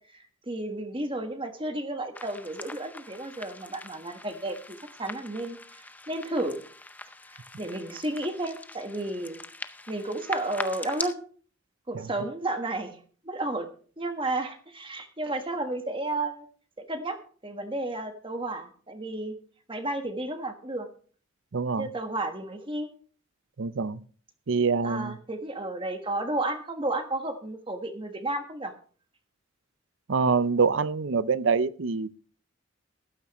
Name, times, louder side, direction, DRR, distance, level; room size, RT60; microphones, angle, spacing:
voice 1, 0.1-5.6 6.1-6.6 7.6-9.4 9.9-11.2 11.9-13.7 14.0-16.5 16.9-17.2 17.4-19.4 19.7-20.9 21.8-22.9 24.8-28.7, right 2 dB, 25° right, 1.3 m, -32 dB
sound 1, 2.1-11.1, left 2 dB, 10° left, 0.5 m, -42 dB
voice 2, 21.5-21.9 23.6-24.0 24.5-25.2 30.1-32.2, right 5 dB, 70° right, 0.6 m, -25 dB
14.5 x 12.5 x 3.1 m
head